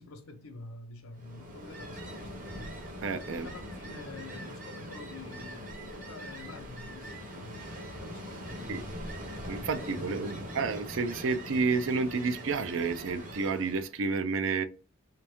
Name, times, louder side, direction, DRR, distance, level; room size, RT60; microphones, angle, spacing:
voice 1, 0.0-2.7 3.3-8.9 9.6-10.5, left 3 dB, 80° left, 0.7 m, -48 dB
Ocean, 1.1-13.9, equal, 40° right, 0.9 m, -42 dB
voice 2, 3.0-3.5 8.7-8.8 9.5-14.6, right 4 dB, 60° right, 0.4 m, -30 dB
3.4 x 2.9 x 3.4 m
head